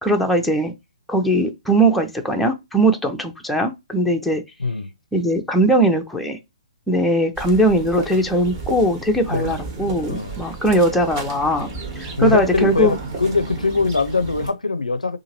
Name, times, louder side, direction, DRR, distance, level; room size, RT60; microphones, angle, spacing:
voice 1, 0.0-0.7 1.1-4.4 5.1-6.4 6.9-11.7 12.0-13.0, right 1 dB, ahead, 0.4 m, -20 dB
sound 1, 7.4-14.5, right 3 dB, 35° right, 1.0 m, -32 dB
voice 2, 12.2-15.2, left 3 dB, 85° left, 0.4 m, -22 dB
2.8 x 2.5 x 2.8 m
figure-of-eight pair, 130°, 4 cm